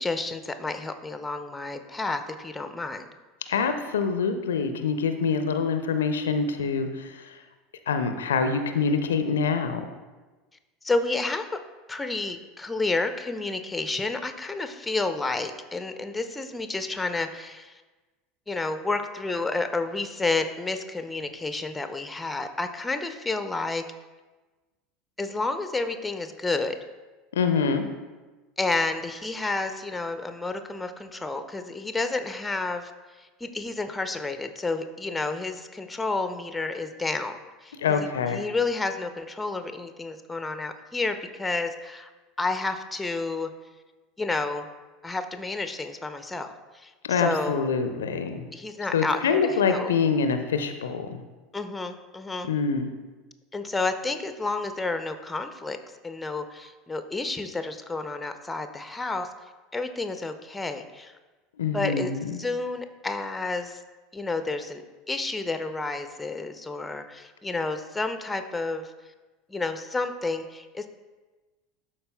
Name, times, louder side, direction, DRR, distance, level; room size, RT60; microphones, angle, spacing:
voice 1, 0.0-3.1 10.8-11.6 11.9-17.8 18.5-23.8 25.2-26.8 28.6-32.9 33.2-42.1 42.4-43.5 44.2-44.7 45.0-47.7 48.5-49.9 51.5-52.5 53.5-55.8 56.0-59.3 59.7-61.1 61.7-62.1 62.4-63.8 64.1-64.8 65.1-68.9 69.5-70.9, left 3 dB, 10° left, 8 dB, 0.5 m, -30 dB
voice 2, 3.5-7.2 7.9-9.9 27.3-27.9 37.8-38.4 47.0-48.5 48.9-51.2 52.4-52.9 61.6-62.4, left 5 dB, 75° left, 8 dB, 0.4 m, -25 dB
12.0 x 4.2 x 2.2 m, 1.2 s
figure-of-eight pair, 75°, 0 cm